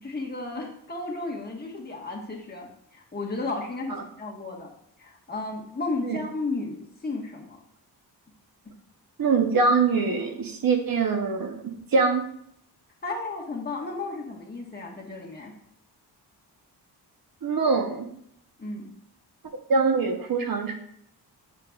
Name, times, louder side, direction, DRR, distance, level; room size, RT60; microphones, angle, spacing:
voice 1, 0.0-4.7 5.0-7.6 13.0-15.5 18.6-18.9, left 3 dB, 25° left, -1 dB, 1.3 m, -33 dB
voice 2, 9.2-12.2 17.4-18.1 19.7-20.7, right 4 dB, 55° right, 5 dB, 0.9 m, -23 dB
6.9 x 6.6 x 2.3 m, 0.71 s
wide cardioid pair, 105°, 41 cm